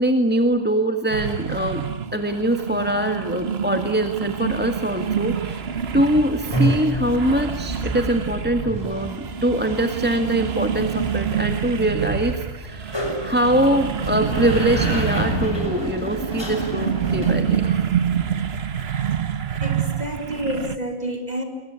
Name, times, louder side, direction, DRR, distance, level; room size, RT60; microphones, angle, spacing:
voice 1, 0.0-5.7 5.9-17.7, right 1 dB, 10° right, 5 dB, 1.7 m, -23 dB
sound 1, 1.1-20.8, right 8 dB, 50° right, 1.3 m, -27 dB
sound 2, 5.9-18.4, right 1 dB, 20° left, 6.9 m, -30 dB
voice 2, 19.6-21.4, right 1 dB, 30° right, 3 dB, 4.7 m, -28 dB
28.0 x 22.0 x 9.5 m, 1.1 s
omnidirectional pair, 1.4 m